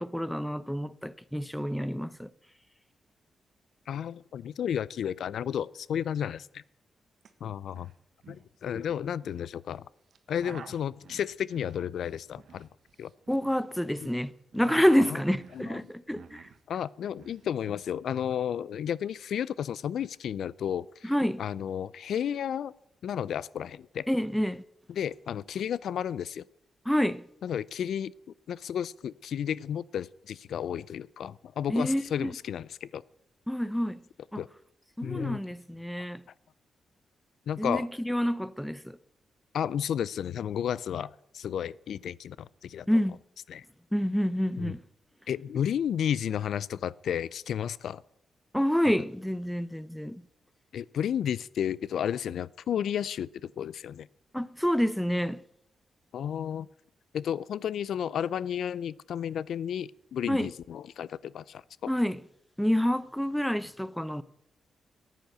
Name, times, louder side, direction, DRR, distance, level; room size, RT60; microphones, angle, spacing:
voice 1, 0.0-2.3 13.3-16.4 21.0-21.4 24.1-24.6 26.9-27.2 31.7-32.3 33.5-34.0 34.3-34.4 35.0-36.2 37.6-39.0 42.9-43.2 43.9-44.8 48.5-50.2 54.3-55.4 60.3-60.5 61.9-62.2 62.6-64.2, equal, 5° left, 0.7 m, -28 dB
voice 2, 3.9-6.6 7.4-7.9 8.3-9.8 10.3-12.7 13.0-13.1 14.0-14.1 15.1-15.2 15.5-15.9 16.7-21.1 21.4-22.7 23.0-24.1 24.9-26.4 27.4-28.1 28.5-33.0 34.4-34.5 35.0-35.4 37.5-37.9 39.5-42.9 43.5-43.6 44.6-44.8 45.3-48.0 50.7-54.1 56.1-56.7 57.1-61.9, left 9 dB, 80° left, 0.4 m, -32 dB
sound 1, 7.2-7.3 7.6-7.9 8.2-9.4 10.1-14.1 14.4-16.6 16.9-17.8, right 6 dB, 65° right, 1.3 m, -48 dB
14.0 x 9.3 x 6.7 m
cardioid pair, 75°, 0 cm